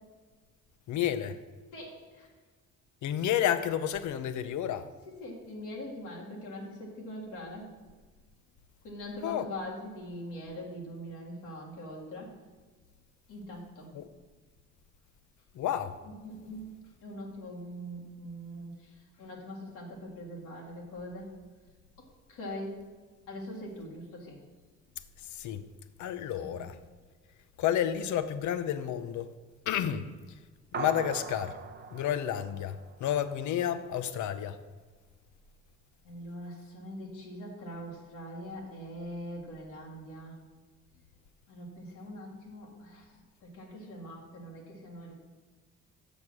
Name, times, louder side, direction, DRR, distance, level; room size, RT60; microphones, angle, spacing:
voice 1, 0.9-1.4 3.0-4.9 9.2-9.4 13.9-14.1 15.5-16.0 25.2-25.6 26.0-26.8 27.6-29.3 29.7-30.1 30.8-31.6 31.9-34.6, left 10 dB, 75° left, 0.6 m, -31 dB
voice 2, 1.7-2.3 5.2-7.7 8.8-12.3 13.3-13.9 16.0-16.6 17.0-18.9 19.2-21.3 22.3-22.8 23.3-24.4 26.4-26.6 36.0-40.4 41.5-43.1 43.4-45.1, equal, 90° left, 1.9 m, -42 dB
sound 1, 30.7-33.4, right 4 dB, 35° right, 0.6 m, -41 dB
7.2 x 5.2 x 6.2 m
cardioid pair, 90°, 30 cm